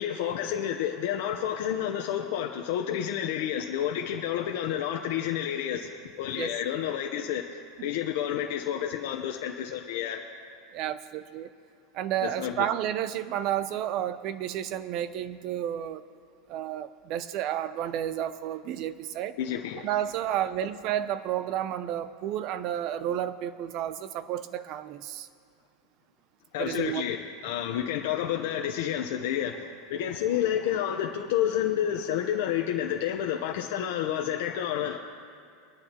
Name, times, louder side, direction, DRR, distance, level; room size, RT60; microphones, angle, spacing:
voice 1, 0.0-5.9 6.2-10.2 12.2-12.7 19.4-19.9 26.5-27.2 27.4-35.0, left 10 dB, 60° left, 2 dB, 0.8 m, -30 dB
voice 2, 10.7-11.5 11.9-16.0 16.5-19.4 19.8-25.3 26.6-27.0, right 11 dB, 40° right, 13 dB, 0.5 m, -31 dB
22.5 x 11.0 x 3.0 m, 2.4 s
supercardioid pair, 160°, 0 cm